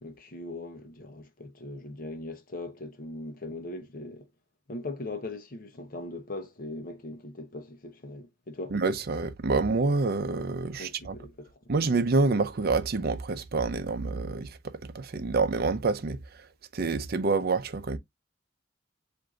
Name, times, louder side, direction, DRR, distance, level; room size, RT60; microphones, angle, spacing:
voice 1, 0.0-4.3 4.7-8.7 10.8-11.7, left 2 dB, 50° left, 0.8 m, -40 dB
voice 2, 8.7-11.2 11.7-16.5 16.7-18.0, right 3 dB, 55° right, 0.6 m, -27 dB
7.6 x 2.7 x 2.3 m
head